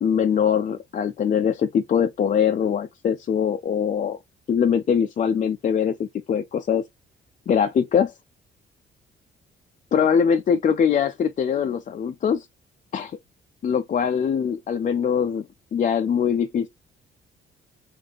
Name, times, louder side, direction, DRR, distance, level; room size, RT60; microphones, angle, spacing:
voice 1, 0.0-4.2 4.5-6.8 7.5-8.1 9.9-12.5 12.9-13.2 13.6-15.5 15.7-16.7, left 7 dB, 40° left, 0.4 m, -22 dB
3.3 x 3.3 x 3.9 m
cardioid pair, 90°, 20 cm